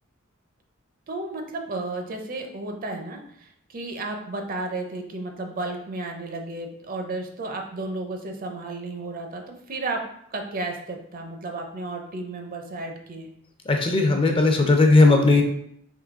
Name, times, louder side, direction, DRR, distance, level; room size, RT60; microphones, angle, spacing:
voice 1, 1.1-10.0 10.3-13.3, right 2 dB, 45° right, 4 dB, 0.5 m, -33 dB
voice 2, 13.7-15.4, left 3 dB, 25° left, 3 dB, 0.5 m, -17 dB
3.7 x 3.0 x 3.6 m, 0.69 s
head